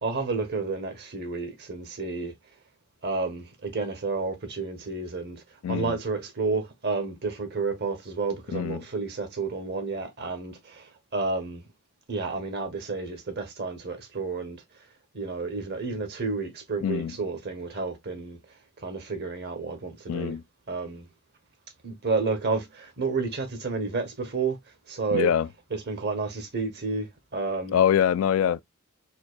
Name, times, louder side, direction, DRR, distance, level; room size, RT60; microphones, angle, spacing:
voice 1, 0.0-2.3 3.0-5.4 5.7-11.6 12.1-14.6 15.1-18.4 18.8-20.4 20.7-21.1 21.8-24.6 24.9-25.3 25.7-27.8, right 4 dB, 50° right, 1.0 m, -31 dB
voice 2, 5.6-6.0 8.5-8.8 16.8-17.1 20.1-20.4 25.1-25.5 27.7-28.6, left 9 dB, 70° left, 0.3 m, -24 dB
4.4 x 2.3 x 2.4 m
head